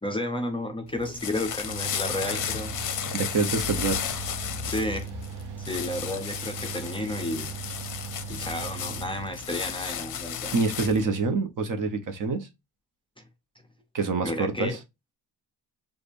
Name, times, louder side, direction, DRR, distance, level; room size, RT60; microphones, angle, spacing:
voice 1, 0.0-2.8 4.6-5.1 5.7-7.5 8.3-10.6 14.2-14.8, left 1 dB, 15° left, 0.5 m, -32 dB
sound 1, 0.9-11.1, left 8 dB, 50° left, 0.7 m, -34 dB
Mechanical fan, 1.7-10.1, right 9 dB, 85° right, 0.7 m, -39 dB
voice 2, 3.1-4.0 10.5-12.5 13.9-14.8, right 4 dB, 50° right, 1.0 m, -26 dB
6.8 x 2.5 x 2.6 m
cardioid pair, 145°, 40 cm